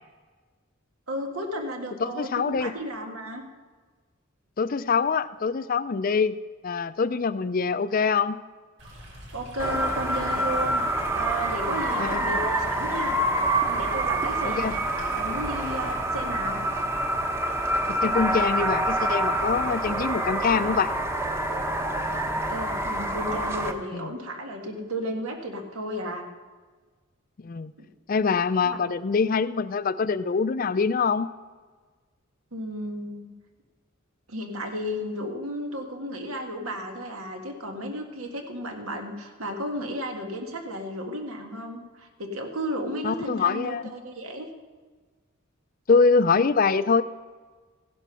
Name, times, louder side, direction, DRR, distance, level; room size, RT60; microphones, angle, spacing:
voice 1, 1.1-3.4 9.3-13.2 13.4-16.6 22.5-26.3 27.8-27.9 28.6-28.8 32.5-33.3 34.3-44.5, equal, 90° right, 3 dB, 1.9 m, -33 dB
voice 2, 2.0-2.7 4.6-8.4 12.0-12.2 14.4-14.8 18.0-20.9 23.9-24.1 27.4-27.7 28.1-31.3 43.0-43.9 45.9-47.0, left 5 dB, 40° left, 14 dB, 0.4 m, -24 dB
Stream, 8.8-15.9, equal, 65° right, 5.1 m, -45 dB
sound 1, 9.6-23.7, right 1 dB, 10° right, 0.8 m, -27 dB
15.5 x 11.0 x 5.7 m, 1.4 s
head